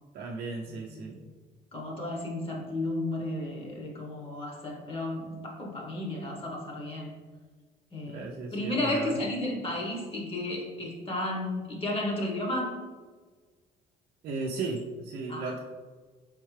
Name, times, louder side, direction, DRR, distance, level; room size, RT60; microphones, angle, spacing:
voice 1, 0.1-1.2 8.1-9.2 14.2-15.6, right 3 dB, 65° right, -1 dB, 0.5 m, -35 dB
voice 2, 1.7-7.1 7.9-8.3 8.5-12.7 15.3-15.5, left 1 dB, 35° left, -1 dB, 1.2 m, -33 dB
4.5 x 3.6 x 3.2 m, 1.4 s
cardioid pair, 110°, 17 cm